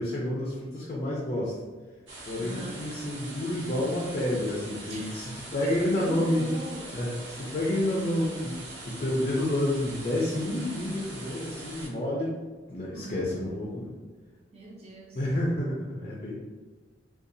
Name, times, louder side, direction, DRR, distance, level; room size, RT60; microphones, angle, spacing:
voice 1, 0.0-1.5 2.2-6.4 6.9-8.6 8.8-12.3 12.7-13.9 15.2-16.3, left 1 dB, 35° left, -4 dB, 0.4 m, -29 dB
sound 1, 2.1-11.9, right 2 dB, 90° right, 0.7 m, -43 dB
voice 2, 2.4-2.9 4.9-5.1 5.6-7.1 12.9-13.4 14.5-15.2, right 1 dB, 35° right, -2 dB, 0.5 m, -40 dB
2.7 x 2.3 x 2.5 m, 1.4 s
head